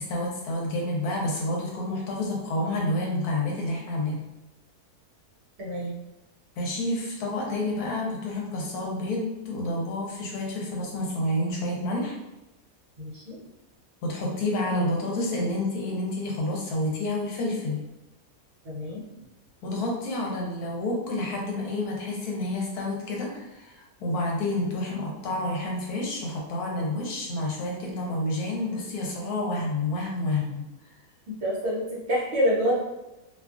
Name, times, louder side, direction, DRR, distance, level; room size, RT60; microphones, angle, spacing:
voice 1, 0.0-4.2 6.6-12.2 14.0-17.8 19.6-30.7, left 1 dB, 80° left, -2 dB, 1.2 m, -29 dB
voice 2, 5.6-6.0 13.0-13.4 18.6-19.0 31.4-32.8, equal, 55° right, -6 dB, 0.8 m, -27 dB
2.6 x 2.4 x 2.4 m, 1.0 s
omnidirectional pair, 1.6 m